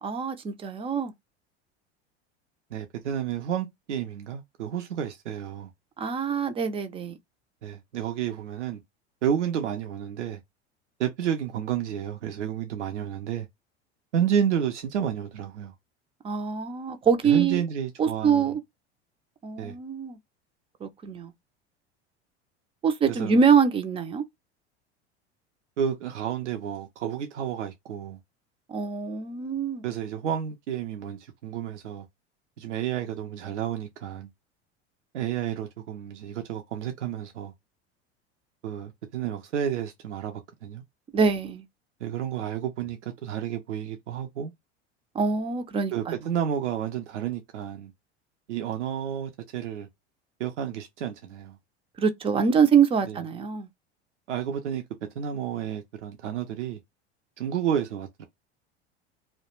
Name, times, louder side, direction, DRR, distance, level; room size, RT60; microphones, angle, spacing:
voice 1, 0.0-1.1 6.0-7.2 16.2-17.6 18.0-18.6 19.4-20.2 20.8-21.3 22.8-24.2 28.7-29.8 41.1-41.6 45.1-46.1 52.0-53.7, right 6 dB, 15° right, 0.3 m, -24 dB
voice 2, 2.7-5.7 7.6-8.8 9.2-10.4 11.0-13.5 14.1-15.7 17.2-18.6 19.6-19.8 23.1-23.4 25.8-28.2 29.8-32.1 32.6-34.3 35.1-37.5 38.6-40.8 42.0-44.5 45.9-47.9 48.5-49.9 50.4-51.6 53.1-53.2 54.3-54.8 55.2-56.8 57.4-58.3, right 9 dB, 90° right, 0.5 m, -31 dB
2.3 x 2.1 x 2.9 m
hypercardioid pair, 85°, 34 cm